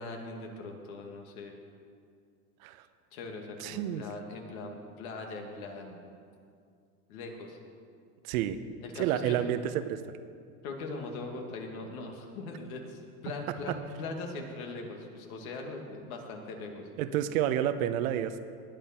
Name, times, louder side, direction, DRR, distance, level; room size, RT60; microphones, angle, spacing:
voice 1, 0.0-1.5 3.1-6.0 7.1-7.6 8.8-9.4 10.6-16.9, left 3 dB, 65° left, 2 dB, 2.4 m, -40 dB
voice 2, 3.6-4.0 8.2-8.6 9.0-10.0 13.7-13.8 17.0-18.4, right 11 dB, 65° right, 10 dB, 1.0 m, -29 dB
19.5 x 9.2 x 4.5 m, 2.3 s
supercardioid pair, 125°, 46 cm